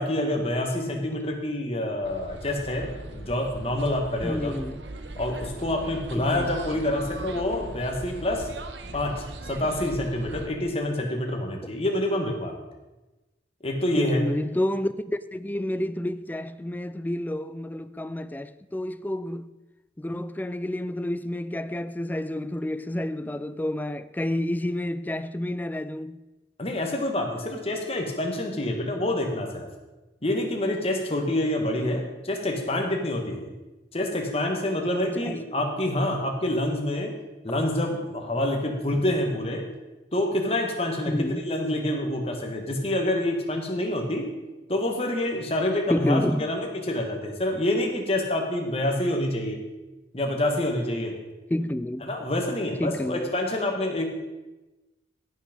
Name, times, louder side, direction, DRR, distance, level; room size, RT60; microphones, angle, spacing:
voice 1, 0.0-4.6 5.2-8.5 8.9-12.5 13.6-14.2 26.6-29.7 30.2-33.5 33.9-37.1 37.4-39.7 40.1-44.3 44.7-49.6 50.1-51.2 52.0-54.1, left 1 dB, 35° left, 1.7 m, -27 dB
sound 1, 2.0-10.5, right 2 dB, 85° right, 1.0 m, -39 dB
voice 2, 4.2-4.8 6.2-6.5 14.0-19.6 20.0-26.2 35.1-35.4 41.1-41.5 45.9-46.5 51.5-52.1 52.8-53.3, left 1 dB, 10° left, 0.3 m, -29 dB
16.0 x 6.2 x 5.3 m
head